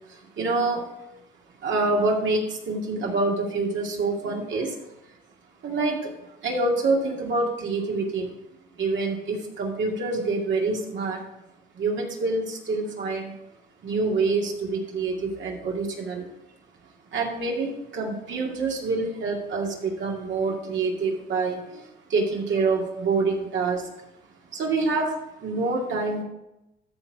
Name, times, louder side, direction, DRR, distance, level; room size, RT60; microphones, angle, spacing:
voice 1, 0.1-0.9 1.6-4.8 5.6-8.3 8.8-11.2 11.7-13.3 13.8-16.3 17.1-21.8 22.1-23.9 24.5-25.1 25.4-26.2, right 3 dB, 70° right, 0 dB, 2.3 m, -26 dB
13.0 x 4.5 x 4.9 m, 0.91 s
cardioid pair, 90°, 20 cm